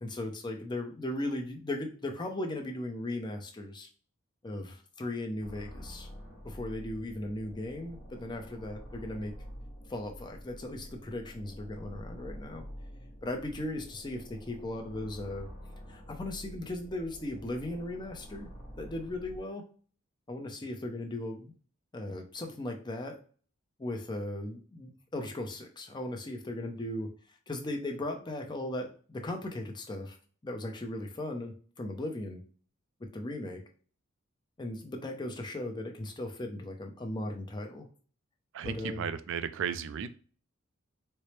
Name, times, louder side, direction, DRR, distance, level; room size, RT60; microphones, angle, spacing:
voice 1, 0.0-3.9 4.4-6.1 6.4-9.3 9.9-12.6 13.2-15.5 15.9-18.5 18.8-19.6 20.3-21.5 21.9-23.1 23.8-27.1 27.5-30.2 30.4-32.4 33.1-33.6 34.6-37.9 38.6-39.1, left 1 dB, 20° left, 3 dB, 0.6 m, -37 dB
sound 1, 5.4-19.4, equal, 45° left, 0.9 m, -47 dB
voice 2, 38.5-40.2, right 7 dB, 60° right, 12 dB, 0.3 m, -35 dB
4.3 x 2.0 x 3.1 m, 0.41 s
head